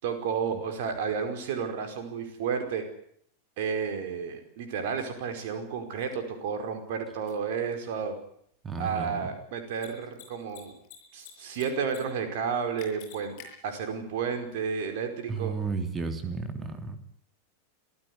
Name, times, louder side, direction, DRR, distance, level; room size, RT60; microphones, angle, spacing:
voice 1, 0.0-2.8 3.6-8.2 8.8-10.7 11.1-13.4 13.6-15.5, right 6 dB, 50° right, 7 dB, 5.1 m, -31 dB
Mechanisms, 7.3-7.4 9.7-9.9 10.1-10.2 10.5-11.3 11.5-12.0 12.2-12.3 12.8-13.5, left 13 dB, 45° left, 7.7 m, -46 dB
voice 2, 8.6-9.3 15.3-17.0, right 4 dB, 20° right, 8 dB, 3.3 m, -33 dB
26.5 x 15.5 x 9.7 m, 0.67 s
figure-of-eight pair, 90°, 0 cm